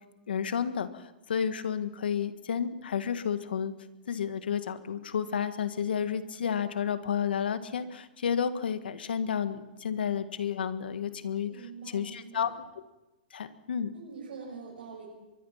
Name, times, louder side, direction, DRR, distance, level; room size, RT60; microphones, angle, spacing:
voice 1, 0.3-3.7 4.1-12.5 13.3-13.9, left 7 dB, 90° left, 10 dB, 1.8 m, -31 dB
voice 2, 11.4-12.5 13.9-15.1, right 5 dB, 85° right, -3 dB, 6.9 m, -44 dB
24.0 x 21.0 x 5.8 m, 0.99 s
hypercardioid pair, 145°, 5 cm